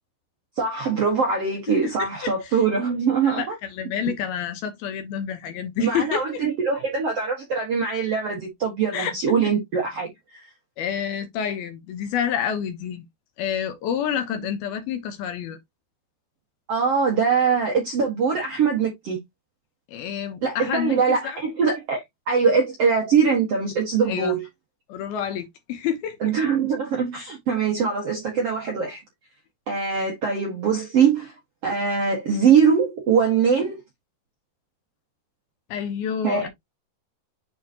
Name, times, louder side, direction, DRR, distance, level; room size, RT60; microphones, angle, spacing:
voice 1, 0.6-3.5 5.8-10.4 16.7-19.2 20.4-24.4 26.2-29.0 29.7-31.3 31.6-33.8 36.2-36.5, right 6 dB, 60° right, 1.6 m, -22 dB
voice 2, 2.0-2.6 3.2-6.4 8.9-9.1 10.8-13.0 13.4-15.6 19.9-21.4 24.1-24.4 24.9-26.4 35.7-36.5, left 8 dB, 75° left, 2.6 m, -28 dB
8.6 x 3.9 x 2.8 m
omnidirectional pair, 5.0 m